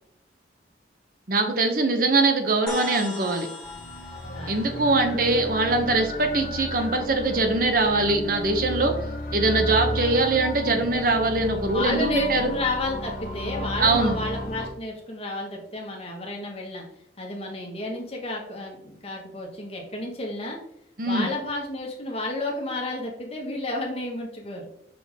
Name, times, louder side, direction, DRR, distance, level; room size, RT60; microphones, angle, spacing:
voice 1, 1.3-3.5 4.5-9.0 9.3-12.5 13.8-14.2 21.0-21.3, right 2 dB, 50° right, 5 dB, 0.9 m, -22 dB
sound 1, 2.7-6.4, left 2 dB, 5° left, 1.5 m, -40 dB
sound 2, 3.6-14.7, left 1 dB, 50° left, 1.4 m, -33 dB
voice 2, 4.3-4.9 11.6-16.8 17.2-20.6 21.0-24.7, left 2 dB, 35° left, 0 dB, 1.6 m, -31 dB
6.0 x 5.8 x 3.6 m, 0.72 s
head